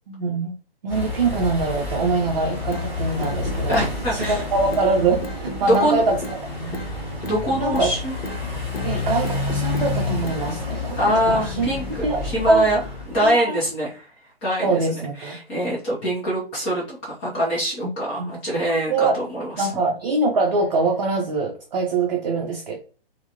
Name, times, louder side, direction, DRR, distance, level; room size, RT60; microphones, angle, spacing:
voice 1, 0.1-0.5 0.8-3.8 4.1-6.8 7.6-7.9 8.8-11.7 12.0-12.7 13.2-13.6 14.6-15.4 18.2-18.4 18.9-19.2 19.6-22.8, right 3 dB, 45° right, 1 dB, 0.5 m, -23 dB
sound 1, 0.9-13.3, left 3 dB, 5° right, 1.1 m, -29 dB
sound 2, 2.7-2.9 3.2-3.9 4.2-4.4 4.7-4.9 5.2-5.9 6.2-6.4 6.7-6.9 7.2-7.9 8.2-8.4 8.7-8.9 9.2-9.9 10.2-10.4, equal, 70° left, 0.7 m, -34 dB
voice 2, 3.7-4.4 5.6-6.1 7.3-8.2 11.0-14.1 14.4-14.8 15.2-19.7, equal, 10° left, -6 dB, 0.5 m, -24 dB
3.3 x 2.1 x 2.7 m, 0.37 s
figure-of-eight pair, 125°, 31 cm